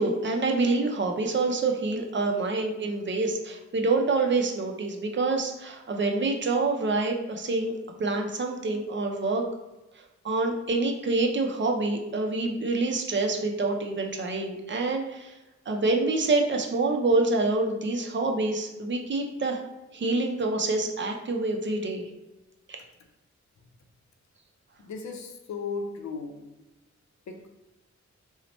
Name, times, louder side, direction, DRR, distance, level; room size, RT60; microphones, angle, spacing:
voice 1, 0.0-7.7 8.0-9.4 10.2-15.4 15.7-19.6 19.9-22.1 22.7-22.8, right 3 dB, 40° right, 2 dB, 0.5 m, -26 dB
voice 2, 24.8-26.4 27.3-27.5, left 4 dB, 70° left, 4 dB, 0.5 m, -35 dB
2.8 x 2.1 x 4.0 m, 1.0 s
wide cardioid pair, 115°, 29 cm